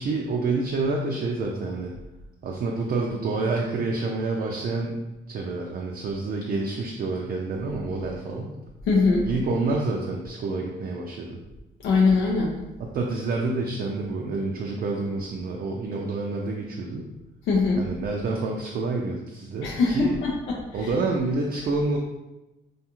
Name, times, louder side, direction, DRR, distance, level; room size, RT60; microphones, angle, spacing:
voice 1, 0.0-1.9 2.4-5.0 5.3-8.5 9.2-11.4 12.9-17.1 17.8-20.2 20.7-22.0, right 3 dB, 50° right, 0 dB, 0.4 m, -28 dB
voice 2, 8.9-9.3 11.8-12.5 17.5-17.8 19.6-20.9, left 4 dB, 80° left, -2 dB, 0.5 m, -22 dB
2.4 x 2.3 x 2.9 m, 0.99 s
cardioid pair, 90°, 20 cm